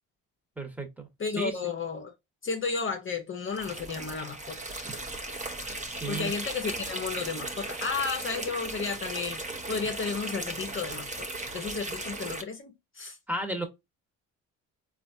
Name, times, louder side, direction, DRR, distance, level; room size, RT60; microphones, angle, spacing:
voice 1, 0.6-1.1 1.4-1.5 5.9-6.3 13.3-13.6, right 2 dB, 5° right, 1.3 m, -33 dB
voice 2, 1.2-2.1 2.4-4.7 6.1-13.2, left 5 dB, 35° left, 0.7 m, -33 dB
sound 1, 3.5-12.4, right 2 dB, 20° right, 1.0 m, -37 dB
4.0 x 2.4 x 2.6 m
cardioid pair, 85°, 35 cm